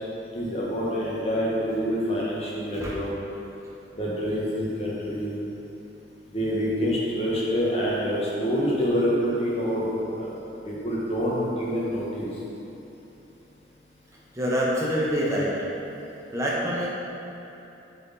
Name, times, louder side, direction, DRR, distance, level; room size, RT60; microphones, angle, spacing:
voice 1, 0.3-3.1 3.9-5.3 6.3-10.3 10.6-12.4, equal, 30° left, -6 dB, 1.2 m, -26 dB
voice 2, 14.3-15.5 16.3-16.9, equal, 15° right, -5 dB, 0.9 m, -25 dB
7.1 x 4.1 x 4.1 m, 2.9 s
head